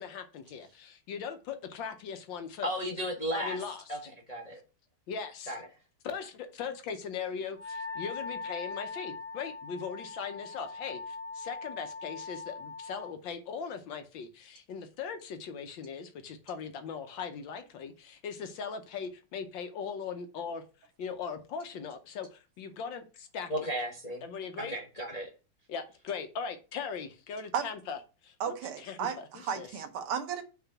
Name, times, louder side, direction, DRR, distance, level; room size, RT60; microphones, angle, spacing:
voice 1, 0.0-2.7 3.3-3.8 5.1-5.6 6.0-20.6 21.0-23.7 24.2-24.8 25.7-28.0 28.2-28.3 28.8-29.7, left 6 dB, 70° left, 1.4 m, -39 dB
voice 2, 2.6-3.6 3.9-4.0 4.3-4.6 5.5-5.6 23.5-24.2 24.6-25.3, equal, 30° left, 0.7 m, -34 dB
Wind instrument woodwind instrument, 7.6-13.1, left 4 dB, 10° left, 1.0 m, -41 dB
voice 3, 28.4-30.4, right 7 dB, 85° right, 1.9 m, -34 dB
5.9 x 3.7 x 5.7 m
omnidirectional pair, 2.4 m